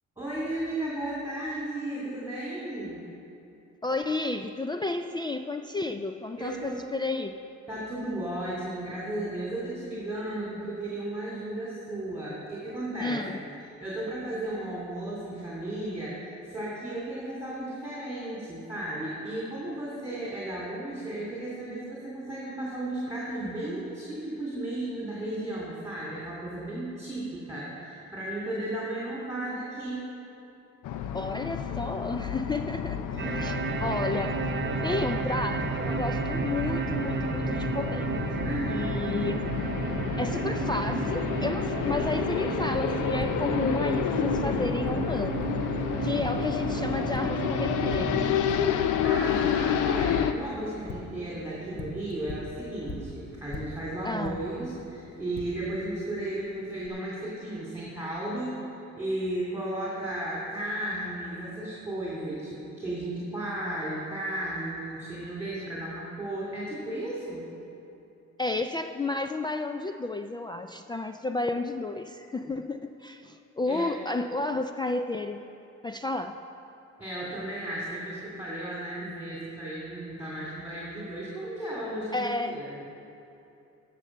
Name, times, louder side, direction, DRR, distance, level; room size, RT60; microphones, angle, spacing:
voice 1, 0.2-3.0 6.4-6.8 7.7-13.2 13.8-30.1 33.2-33.6 38.4-38.9 48.7-67.4 73.7-73.9 77.0-82.8, right 1 dB, 10° right, -6 dB, 2.7 m, -34 dB
voice 2, 3.8-7.3 13.0-13.4 31.1-34.5 34.8-38.1 38.7-39.5 40.2-45.4 45.8-48.3 54.0-54.4 68.4-75.4 75.8-76.4 82.1-82.6, left 2 dB, 15° left, 7 dB, 0.3 m, -32 dB
sound 1, 30.8-50.3, left 8 dB, 85° left, 0.6 m, -30 dB
sound 2, 33.2-48.3, right 5 dB, 35° right, 0.8 m, -32 dB
Tap, 42.0-56.9, left 2 dB, 35° left, 1.2 m, -44 dB
11.0 x 6.6 x 6.6 m, 2.8 s
cardioid pair, 90°, 30 cm